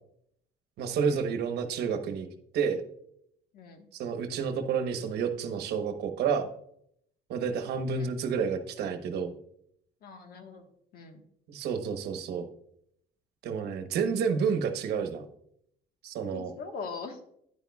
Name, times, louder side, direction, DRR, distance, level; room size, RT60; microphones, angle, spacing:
voice 1, 0.8-2.3 2.5-2.8 3.9-6.5 7.3-9.3 11.5-12.5 13.4-15.3 16.0-16.5, right 6 dB, 75° right, 7 dB, 1.1 m, -30 dB
voice 2, 3.5-3.9 7.9-8.1 10.0-10.7 10.9-11.2 16.3-17.2, left 5 dB, 65° left, 5 dB, 1.5 m, -42 dB
10.0 x 9.0 x 2.4 m, 0.71 s
cardioid pair, 110°, 17 cm